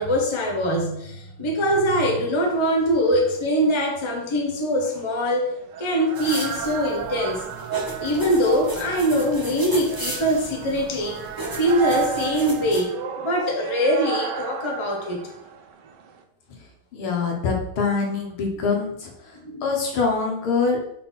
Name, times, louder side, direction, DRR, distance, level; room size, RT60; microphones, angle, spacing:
voice 1, 0.0-5.5 5.8-7.4 8.0-11.2 11.5-15.2 19.3-19.7, equal, 20° left, 0 dB, 0.9 m, -23 dB
sound 1, 2.0-16.2, right 8 dB, 65° right, 1.2 m, -34 dB
sound 2, 6.1-12.8, right 1 dB, 20° right, 0.6 m, -36 dB
voice 2, 16.9-19.1 19.6-20.8, left 4 dB, 80° left, 1 dB, 2.2 m, -24 dB
5.5 x 4.3 x 5.6 m, 0.77 s
omnidirectional pair, 2.3 m